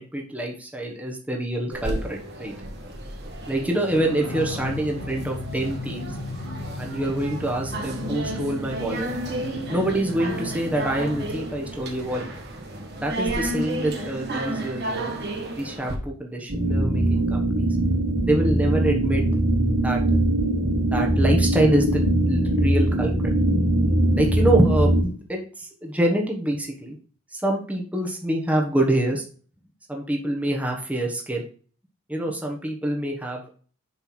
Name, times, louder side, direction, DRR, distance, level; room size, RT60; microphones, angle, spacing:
voice 1, 0.0-2.5 3.5-6.1 6.8-9.1 9.7-12.3 13.0-15.1 15.6-17.7 18.3-19.2 19.8-20.0 20.9-23.3 24.2-27.0 27.3-29.2 29.9-31.4 32.1-33.4, right 1 dB, 5° right, 0 dB, 1.0 m, -26 dB
sound 1, 1.7-15.9, right 1 dB, 50° right, 1.6 m, -33 dB
sound 2, 3.9-12.6, left 2 dB, 65° left, 1.0 m, -36 dB
sound 3, 16.5-25.0, right 1 dB, 75° right, 2.4 m, -21 dB
7.1 x 3.3 x 6.0 m, 0.41 s
head